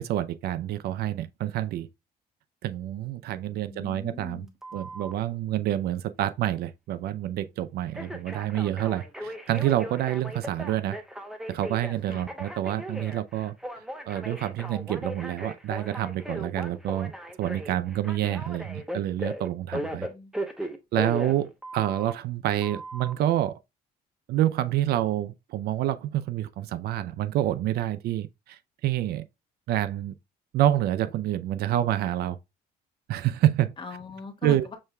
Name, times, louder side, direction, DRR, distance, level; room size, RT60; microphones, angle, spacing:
voice 1, 0.0-1.9 2.6-4.5 4.7-11.0 11.5-13.5 14.1-17.1 17.4-20.1 20.9-23.6 24.3-29.2 29.7-30.1 30.5-32.4 33.1-33.7 34.4-34.6, right 13 dB, 70° right, 0.5 m, -27 dB
voice 2, 3.3-4.5 12.1-12.4 19.9-20.7 33.8-34.8, left 5 dB, 30° left, 1.4 m, -42 dB
Telephone, 4.6-5.2 7.9-22.1 22.6-23.1, equal, 5° right, 0.8 m, -37 dB
6.3 x 3.2 x 2.2 m
cardioid pair, 110°, 17 cm